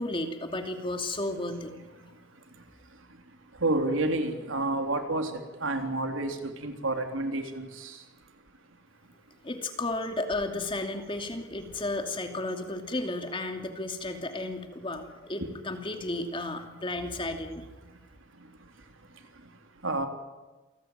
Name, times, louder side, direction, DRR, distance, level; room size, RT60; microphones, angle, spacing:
voice 1, 0.0-1.7 9.4-17.6, left 2 dB, 25° left, 2.7 m, -33 dB
voice 2, 3.5-8.0 15.4-15.5 18.4-18.7 19.8-20.1, right 2 dB, 75° right, 3.5 m, -30 dB
28.5 x 19.0 x 9.3 m
head